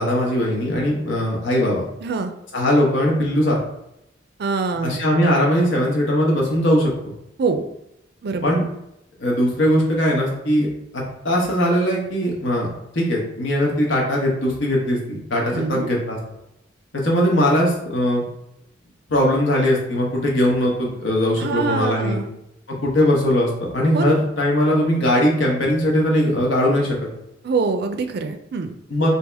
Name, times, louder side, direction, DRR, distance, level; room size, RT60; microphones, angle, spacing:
voice 1, 0.0-1.8 2.5-3.6 4.8-7.1 8.4-8.6 9.2-10.7 10.9-12.7 12.9-16.2 16.9-18.2 19.1-22.2 22.7-26.9 28.9-29.1, equal, 80° left, -2 dB, 1.1 m, -20 dB
voice 2, 2.0-2.3 4.4-5.0 7.4-7.6 8.2-8.6 15.5-15.9 21.4-22.3 23.9-24.1 27.4-28.7, right 4 dB, 60° right, 7 dB, 0.4 m, -24 dB
3.4 x 2.8 x 3.3 m, 0.82 s
head